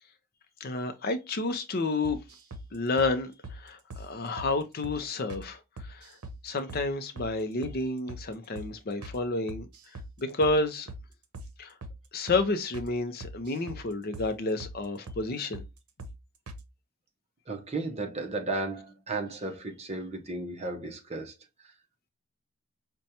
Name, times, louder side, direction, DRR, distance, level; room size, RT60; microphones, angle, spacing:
voice 1, 0.6-2.2 2.7-6.1 6.4-9.7 10.2-10.9 11.6-11.7 12.1-15.6, left 3 dB, 45° left, 0.5 m, -30 dB
sound 1, 2.0-2.7 3.0-3.1 3.4-3.6 3.9-4.1 4.4-4.5 4.8-5.0 5.3-5.5 5.8-6.4 6.7-6.9 7.2-7.3 7.6-7.8 8.1-8.3 8.6-8.7 9.0-9.2 9.5-10.1 10.4-10.6 10.9-11.0 11.3-11.5 11.8-12.0 12.3-12.4 12.7-12.9 13.2-13.8 14.1-14.3 14.6-14.8 15.1-15.2 15.5-15.7 16.0-16.2 16.5-16.6, right 1 dB, 80° right, 0.7 m, -41 dB
voice 2, 17.5-21.3, right 2 dB, 30° right, 0.7 m, -34 dB
5.2 x 2.2 x 2.8 m
head